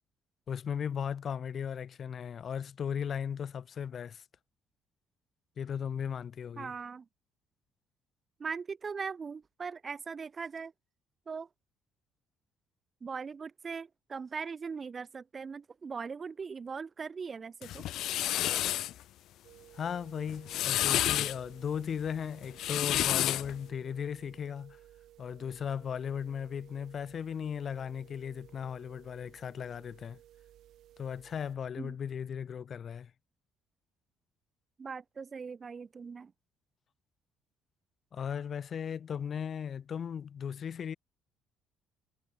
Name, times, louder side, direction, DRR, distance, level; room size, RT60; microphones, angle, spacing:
voice 1, 0.5-4.2 5.6-6.7 19.7-24.8 25.2-30.2 31.0-33.1 38.1-41.0, left 7 dB, 45° left, 1.7 m, -37 dB
voice 2, 6.6-7.0 8.4-10.7 11.3-11.5 13.0-17.8 31.8-32.0 34.8-36.3, right 5 dB, 30° right, 0.9 m, -40 dB
sound 1, 17.6-18.9 20.3-21.4 22.4-23.5, left 13 dB, 70° left, 0.3 m, -30 dB
sound 2, 19.4-31.5, right 12 dB, 70° right, 1.4 m, -57 dB
cardioid pair, 110°, 0 cm